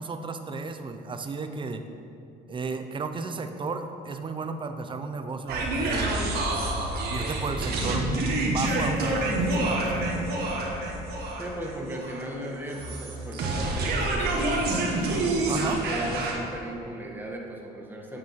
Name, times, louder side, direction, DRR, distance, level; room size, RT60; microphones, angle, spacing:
voice 1, 0.0-1.8 2.5-6.2 7.1-10.1 15.5-15.8, right 4 dB, 30° right, 7 dB, 0.8 m, -34 dB
sound 1, 5.5-16.3, right 2 dB, 70° right, 1.8 m, -27 dB
voice 2, 11.4-18.2, right 1 dB, 10° right, -1 dB, 1.7 m, -37 dB
9.0 x 7.6 x 5.8 m, 2.7 s
cardioid pair, 110°, 17 cm